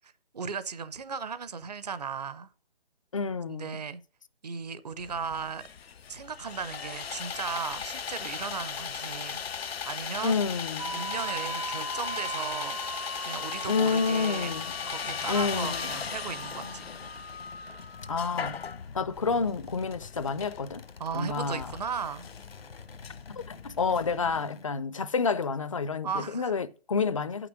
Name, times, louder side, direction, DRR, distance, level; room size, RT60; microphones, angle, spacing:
voice 1, 0.0-2.5 3.5-4.0 4.4-5.6 6.1-10.4 10.9-12.8 13.2-14.5 14.9-16.9 21.0-22.3 26.0-26.5, right 6 dB, 45° right, 0.7 m, -36 dB
voice 2, 3.1-3.8 10.2-11.0 13.7-14.7 15.3-15.9 18.1-18.6 18.9-20.8 21.1-21.7 23.3-27.5, left 5 dB, 35° left, 0.5 m, -29 dB
Sawing, 5.0-24.4, left 7 dB, 90° left, 0.5 m, -38 dB
sound 1, 10.8-18.7, right 3 dB, 65° right, 1.3 m, -40 dB
sound 2, 14.5-24.6, left 5 dB, 70° left, 1.0 m, -48 dB
7.8 x 6.0 x 6.3 m
figure-of-eight pair, 150°, 30 cm